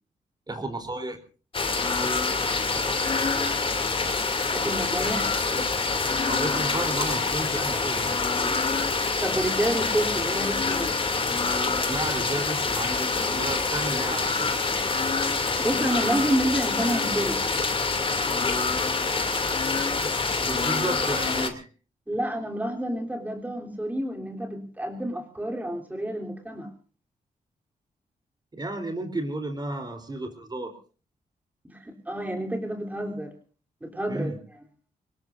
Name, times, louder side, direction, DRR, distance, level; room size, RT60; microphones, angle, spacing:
voice 1, 0.5-1.2 1.7-1.9 5.5-5.7 6.3-8.2 11.8-14.5 19.9-21.7 28.5-30.7 34.1-34.4, right 2 dB, 30° right, 6 dB, 3.7 m, -33 dB
sound 1, 1.5-21.5, left 4 dB, 35° left, 2.8 m, -26 dB
voice 2, 4.5-5.4 9.2-11.0 15.6-17.4 22.1-26.7 31.6-33.3 33.8-34.3, right 1 dB, 10° right, 1 dB, 3.5 m, -29 dB
25.0 x 20.0 x 2.6 m, 0.38 s
cardioid pair, 100°, 15 cm